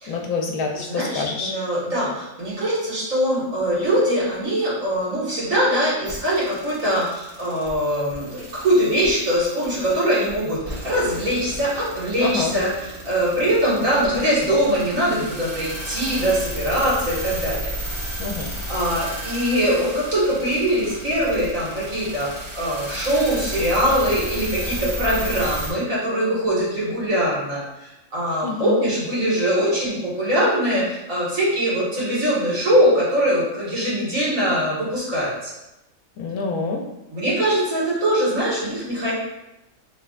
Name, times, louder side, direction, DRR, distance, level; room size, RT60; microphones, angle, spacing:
voice 1, 0.1-1.5 12.2-12.5 18.2-18.5 28.4-28.8 36.2-36.8, left 4 dB, 70° left, 1 dB, 1.0 m, -26 dB
voice 2, 0.9-17.7 18.7-35.5 37.1-39.1, equal, 65° right, -8 dB, 2.1 m, -22 dB
sound 1, 6.1-25.7, equal, 25° right, 1.2 m, -33 dB
5.5 x 3.6 x 2.5 m, 0.91 s
omnidirectional pair, 1.5 m